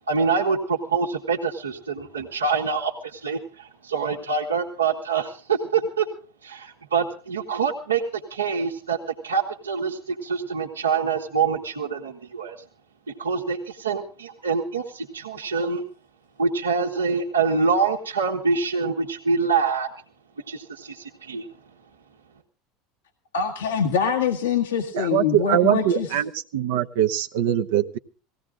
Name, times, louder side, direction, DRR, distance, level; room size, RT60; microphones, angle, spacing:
voice 1, 0.1-6.1 6.4-12.6 13.1-15.8 16.4-19.9 20.5-21.5, right 5 dB, 90° right, -1 dB, 1.6 m, -25 dB
voice 2, 23.3-26.1, left 7 dB, 80° left, 3 dB, 1.5 m, -24 dB
voice 3, 24.9-28.0, right 11 dB, 70° right, 6 dB, 0.8 m, -22 dB
18.5 x 16.0 x 3.7 m, 0.38 s
hypercardioid pair, 80°, 0 cm